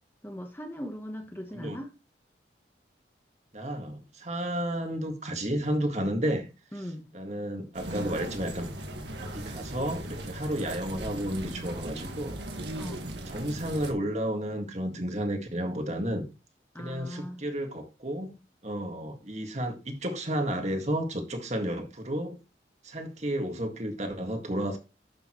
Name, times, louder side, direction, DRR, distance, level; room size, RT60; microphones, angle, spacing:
voice 1, 0.2-1.9 6.7-7.1 12.8-13.1 16.7-17.4, equal, 10° left, 1.2 m, -39 dB
voice 2, 3.5-6.5 7.1-8.7 9.2-12.4 13.3-16.3 16.8-18.4 18.6-22.4 22.8-24.8, right 1 dB, 40° right, 2.0 m, -32 dB
sound 1, 7.7-13.9, right 1 dB, 75° right, 1.8 m, -38 dB
12.5 x 6.9 x 3.1 m
head